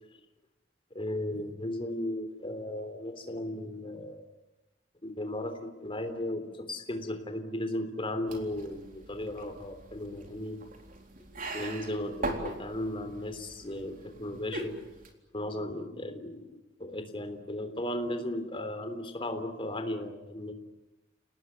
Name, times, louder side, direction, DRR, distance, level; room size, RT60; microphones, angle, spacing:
voice 1, 0.9-4.2 5.0-10.6 11.3-14.8 15.3-20.5, left 1 dB, 30° left, 7 dB, 3.5 m, -36 dB
sound 1, 8.3-15.1, right 2 dB, 50° right, 3.9 m, -41 dB
30.0 x 19.0 x 9.5 m, 1.0 s
head